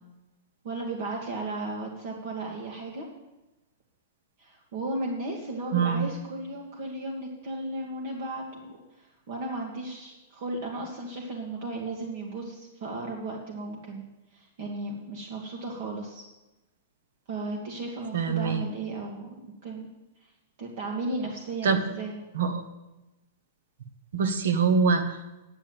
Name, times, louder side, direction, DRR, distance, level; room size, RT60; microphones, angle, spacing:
voice 1, 0.6-3.1 4.4-14.0 14.3-16.2 17.3-19.9 20.2-20.3 20.6-22.2, right 2 dB, 55° right, -1 dB, 1.8 m, -35 dB
voice 2, 5.7-6.1 18.1-18.6 21.6-21.8 22.3-22.6 24.1-25.2, right 5 dB, 80° right, 9 dB, 1.4 m, -24 dB
9.8 x 7.2 x 7.8 m, 1.0 s
hypercardioid pair, 155°, 0 cm